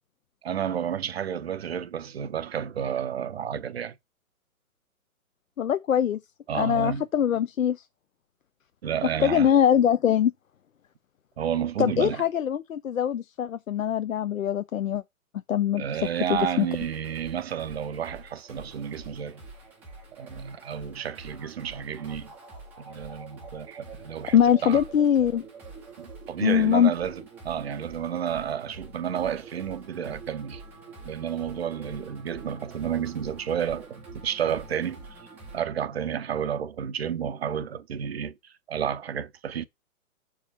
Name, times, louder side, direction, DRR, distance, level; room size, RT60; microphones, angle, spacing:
voice 1, 0.4-4.0 6.5-7.0 8.8-9.5 11.4-12.2 15.8-19.4 20.2-22.3 22.8-24.4 24.6-24.8 26.0-30.6 31.0-35.3 35.5-39.6, right 8 dB, 45° right, 0.7 m, -31 dB
voice 2, 5.6-6.2 6.5-7.8 9.2-10.3 11.8-15.0 15.5-15.8 16.3-16.7 24.3-25.4 26.4-26.9, left 9 dB, 65° left, 0.6 m, -22 dB
sound 1, 16.0-35.6, right 3 dB, 5° right, 0.6 m, -46 dB
6.7 x 4.8 x 4.4 m
figure-of-eight pair, 130°, 43 cm